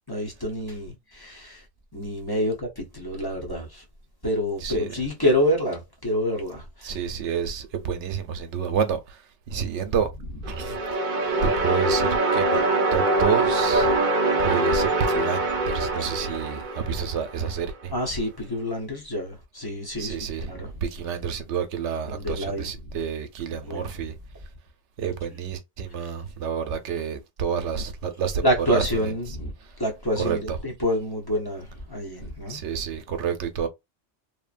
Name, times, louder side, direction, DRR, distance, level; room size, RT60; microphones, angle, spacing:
voice 1, 0.1-1.6 1.9-3.8 4.2-7.0 17.9-20.2 20.5-20.8 22.1-23.0 23.6-23.9 26.0-26.1 28.4-29.5 29.8-32.6, equal, 20° left, 0.8 m, -27 dB
voice 2, 6.8-9.2 9.5-10.1 10.5-10.8 11.4-12.6 12.9-14.0 14.4-17.9 19.9-24.2 25.0-28.4 28.7-29.1 30.2-30.6 32.5-33.7, right 7 dB, 80° right, 0.9 m, -29 dB
sound 1, 10.4-17.5, right 2 dB, 50° right, 0.7 m, -23 dB
3.1 x 2.1 x 2.4 m
omnidirectional pair, 1.2 m